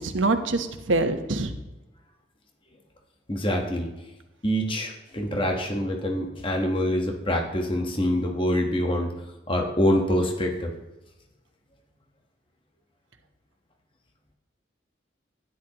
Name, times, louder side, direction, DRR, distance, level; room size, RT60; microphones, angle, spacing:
voice 1, 0.0-1.5, right 2 dB, 85° right, 7 dB, 1.0 m, -25 dB
voice 2, 3.3-3.9 4.4-9.1 9.5-10.7, equal, 25° left, 2 dB, 1.2 m, -25 dB
12.5 x 10.5 x 3.0 m, 1.1 s
head